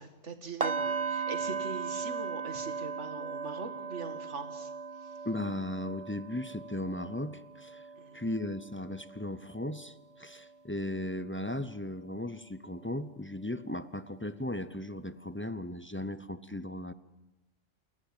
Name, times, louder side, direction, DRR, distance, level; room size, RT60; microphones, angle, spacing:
voice 1, 0.0-5.3 8.0-8.2, right 4 dB, 65° right, 8 dB, 2.5 m, -42 dB
sound 1, 0.6-10.5 10.9-11.2 11.6-11.7, right 5 dB, 30° right, 1.0 m, -38 dB
voice 2, 5.2-7.9 8.1-16.9, left 1 dB, 10° left, 14 dB, 0.6 m, -37 dB
29.0 x 17.0 x 9.0 m, 1.0 s
omnidirectional pair, 1.3 m